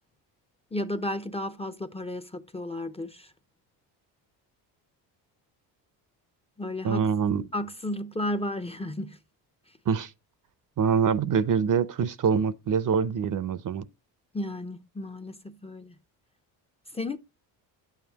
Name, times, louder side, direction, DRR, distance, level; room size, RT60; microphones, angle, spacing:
voice 1, 0.7-3.3 6.6-7.1 7.5-9.2 14.3-15.9 16.9-17.2, left 1 dB, 15° left, 0.7 m, -33 dB
voice 2, 6.8-7.5 9.9-10.1 10.8-13.8, right 6 dB, 45° right, 0.7 m, -25 dB
9.1 x 7.3 x 2.9 m
supercardioid pair, 70°, 46 cm